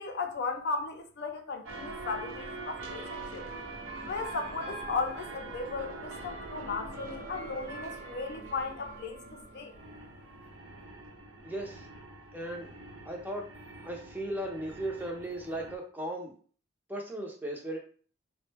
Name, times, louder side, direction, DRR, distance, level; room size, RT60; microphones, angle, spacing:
voice 1, 0.0-3.5 4.0-9.2 9.5-9.7, left 4 dB, 55° left, 0.4 m, -36 dB
sound 1, 1.6-15.8, right 2 dB, 75° right, 0.8 m, -43 dB
voice 2, 11.4-11.9 12.3-12.8 13.0-13.5 13.8-16.3 16.9-17.8, right 1 dB, 10° right, 0.6 m, -36 dB
3.7 x 2.1 x 3.3 m
head